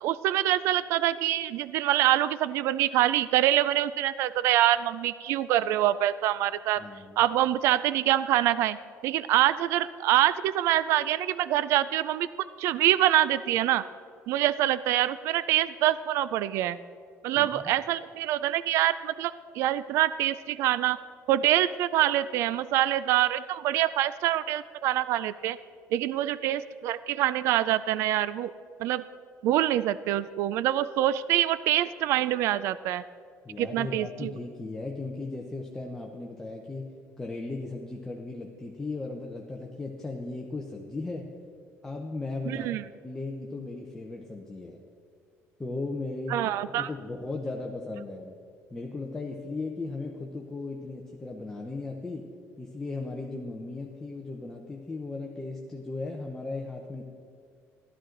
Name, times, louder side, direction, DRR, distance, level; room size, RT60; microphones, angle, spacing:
voice 1, 0.0-6.8 7.2-8.8 9.0-12.3 12.6-13.8 14.3-16.8 17.2-21.0 21.3-25.6 25.9-28.5 28.8-29.0 29.4-33.0 33.6-34.3 42.5-42.8 46.3-46.9, right 13 dB, 55° right, 16 dB, 0.3 m, -25 dB
voice 2, 6.8-7.2 17.4-17.7 33.4-41.3 41.8-42.8 43.0-44.8 45.6-48.4 48.7-52.3 52.6-57.0, left 3 dB, 10° left, 0 dB, 0.7 m, -37 dB
15.5 x 12.5 x 3.8 m, 2.2 s
cardioid pair, 180°, 5 cm